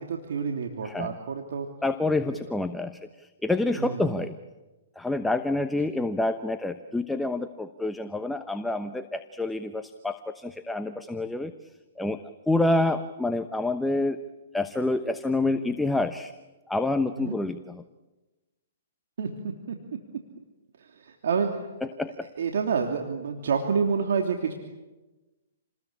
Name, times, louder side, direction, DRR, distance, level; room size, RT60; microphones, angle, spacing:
voice 1, 0.0-1.7 3.8-4.2 17.2-17.4 19.2-19.8 20.8-21.5 22.4-24.5, right 6 dB, 70° right, 3 dB, 3.0 m, -28 dB
voice 2, 0.8-1.2 1.8-4.4 5.0-11.5 12.0-14.2 14.5-16.3 16.7-17.8 21.8-22.3, left 2 dB, 5° left, 8 dB, 1.0 m, -28 dB
29.0 x 20.5 x 8.7 m, 1.1 s
hypercardioid pair, 140°, 0 cm